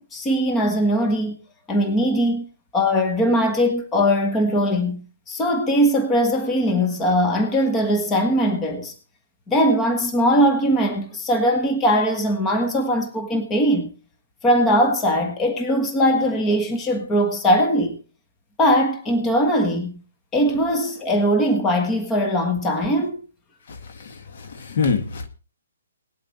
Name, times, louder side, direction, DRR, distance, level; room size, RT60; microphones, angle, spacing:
voice 1, 0.0-1.4 1.7-2.5 2.7-5.0 5.3-8.9 9.5-13.9 14.4-18.0 18.6-20.0 20.3-23.2, equal, 15° left, 1.5 m, -20 dB
voice 2, 23.7-25.3, left 5 dB, 55° left, 2.0 m, -26 dB
19.0 x 8.0 x 4.2 m
hypercardioid pair, 155°, 0 cm